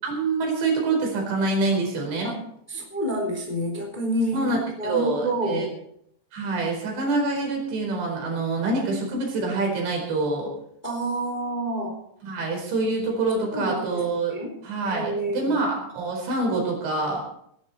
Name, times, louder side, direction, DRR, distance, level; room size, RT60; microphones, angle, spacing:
voice 1, 0.0-2.3 4.3-5.7 6.3-10.5 12.2-14.4 14.6-17.2, right 3 dB, 80° right, 0 dB, 6.9 m, -26 dB
voice 2, 2.7-4.4 4.8-5.7 10.8-12.0 13.5-14.0 14.3-14.5 14.9-15.6, right 1 dB, 10° left, 1 dB, 2.8 m, -28 dB
19.5 x 11.0 x 4.5 m, 0.70 s
omnidirectional pair, 5.1 m